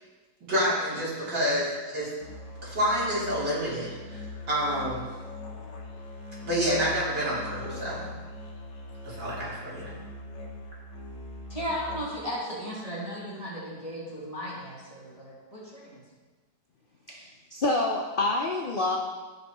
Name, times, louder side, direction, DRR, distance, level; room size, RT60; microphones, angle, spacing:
voice 1, 0.4-2.1 2.6-5.1 6.4-8.0 9.0-9.9, equal, 75° right, -9 dB, 3.9 m, -28 dB
Musical instrument, 2.2-12.3, left 2 dB, 85° left, 2.1 m, -41 dB
voice 2, 11.5-16.0, equal, 20° left, -8 dB, 2.9 m, -35 dB
voice 3, 17.1-19.0, left 2 dB, 50° left, 0 dB, 0.6 m, -27 dB
15.0 x 6.1 x 3.1 m, 1.3 s
omnidirectional pair, 1.9 m